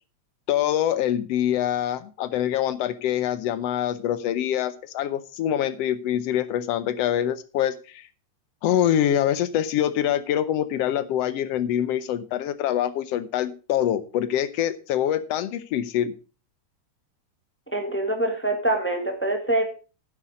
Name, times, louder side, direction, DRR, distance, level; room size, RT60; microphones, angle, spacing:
voice 1, 0.5-8.1 8.6-16.1, left 11 dB, 75° left, 14 dB, 1.6 m, -25 dB
voice 2, 17.7-19.6, right 2 dB, 5° left, 4 dB, 1.2 m, -24 dB
10.0 x 8.0 x 4.9 m, 0.35 s
omnidirectional pair, 3.3 m